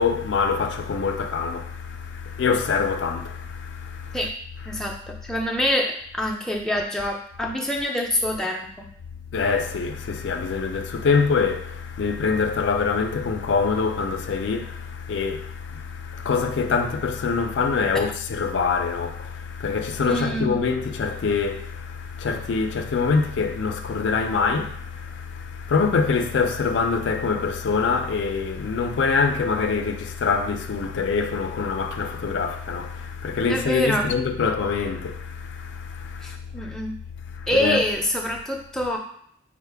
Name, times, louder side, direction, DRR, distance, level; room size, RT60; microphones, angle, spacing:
voice 1, 0.0-4.3 4.6-4.8 9.3-36.7 37.4-37.9, left 5 dB, 80° left, 0.4 m, -25 dB
voice 2, 4.7-5.0 5.2-8.9 20.0-20.6 33.5-34.1 36.2-36.9 37.5-39.0, left 1 dB, 5° left, 0.3 m, -25 dB
4.6 x 2.0 x 3.3 m
head